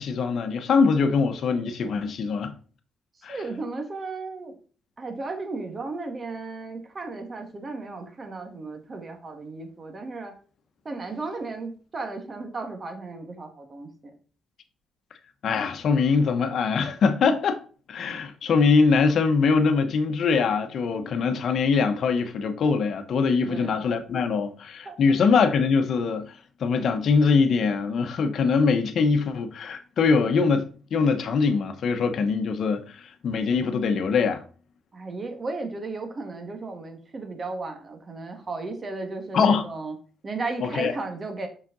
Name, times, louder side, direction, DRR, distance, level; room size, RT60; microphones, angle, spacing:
voice 1, 0.0-2.5 3.2-3.4 15.4-17.6 17.9-26.3 26.6-34.4 39.3-39.6 40.6-40.9, left 5 dB, 60° left, 1.0 m, -23 dB
voice 2, 3.3-4.6 5.0-10.4 10.8-14.1 23.5-23.8 24.8-25.0 34.9-40.0 40.2-41.5, right 3 dB, 35° right, 1.7 m, -35 dB
5.8 x 5.7 x 3.9 m
cardioid pair, 90°, 0 cm